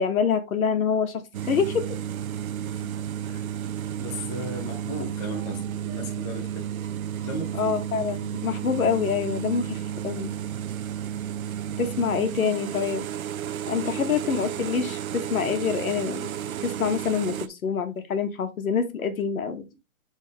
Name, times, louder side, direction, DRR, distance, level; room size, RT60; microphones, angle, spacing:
voice 1, 0.0-1.8 7.6-10.3 11.8-13.0 13.6-16.3 16.6-19.6, left 6 dB, 85° left, 1.7 m, -26 dB
sound 1, 1.3-17.5, right 10 dB, 90° right, 0.7 m, -32 dB
voice 2, 4.0-6.7 7.2-7.7 13.7-14.0, left 1 dB, 10° left, 0.5 m, -36 dB
7.9 x 4.1 x 3.4 m
hypercardioid pair, 160°, 41 cm